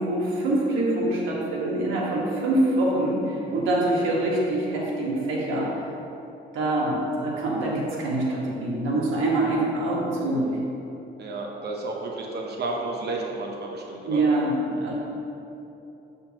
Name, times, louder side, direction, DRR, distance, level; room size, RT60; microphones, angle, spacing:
voice 1, 0.0-5.8 6.5-10.6 14.1-14.9, right 1 dB, 90° right, -4 dB, 1.5 m, -25 dB
voice 2, 11.2-14.3, right 2 dB, 55° right, 0 dB, 0.9 m, -32 dB
7.2 x 6.7 x 2.9 m, 2.9 s
cardioid pair, 90°, 20 cm